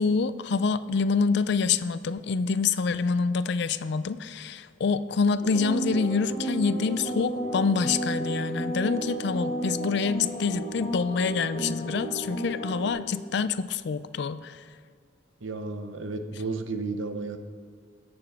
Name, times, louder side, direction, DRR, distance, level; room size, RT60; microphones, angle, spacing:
voice 1, 0.0-14.6, left 5 dB, 55° left, 14 dB, 0.4 m, -26 dB
sound 1, 5.4-12.9, right 1 dB, 30° left, 1.6 m, -32 dB
voice 2, 15.4-17.4, right 3 dB, 75° right, 7 dB, 0.8 m, -33 dB
17.0 x 7.0 x 3.5 m, 2.1 s
head